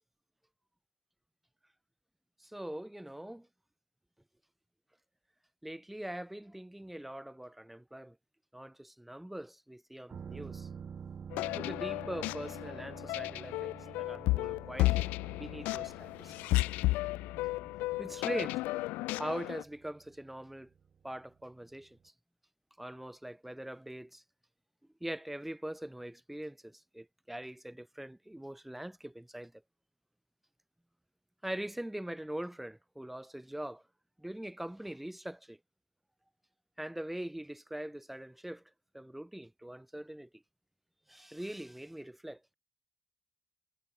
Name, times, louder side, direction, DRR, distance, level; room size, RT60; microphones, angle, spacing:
voice 1, 2.4-3.5 5.6-8.2 8.5-10.7 11.5-16.6 18.0-18.6 19.2-20.7 21.0-22.0 22.8-24.2 25.0-29.5 31.4-33.8 34.2-35.6 36.8-38.6 38.9-40.3 41.1-42.4, right 1 dB, 5° right, 6.0 m, -42 dB
sound 1, 10.1-21.7 22.0-22.1, right 7 dB, 45° right, 3.6 m, -50 dB
sound 2, 11.3-19.6, left 20 dB, 85° left, 0.5 m, -33 dB
supercardioid pair, 70°, 3 cm